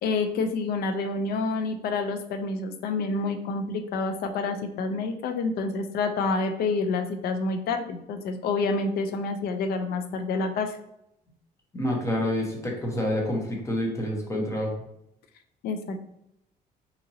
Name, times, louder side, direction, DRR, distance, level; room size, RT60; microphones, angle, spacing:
voice 1, 0.0-10.8 15.6-16.1, left 3 dB, 65° left, 7 dB, 0.4 m, -28 dB
voice 2, 11.7-14.7, left 1 dB, 15° left, -1 dB, 0.8 m, -28 dB
2.8 x 2.6 x 2.7 m, 0.80 s
cardioid pair, 110°, 17 cm